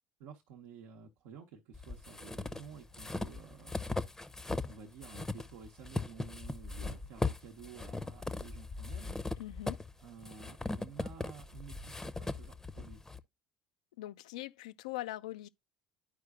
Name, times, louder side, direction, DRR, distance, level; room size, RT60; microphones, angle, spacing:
voice 1, 0.2-4.0 4.6-9.2 10.0-13.0, right 6 dB, 70° right, 0.9 m, -52 dB
sound 1, 1.7-4.8 5.0-13.2, left 3 dB, 10° left, 0.6 m, -39 dB
voice 2, 9.4-9.8 14.0-15.5, left 16 dB, 80° left, 0.3 m, -41 dB
11.5 x 4.8 x 2.3 m
hypercardioid pair, 75°, 4 cm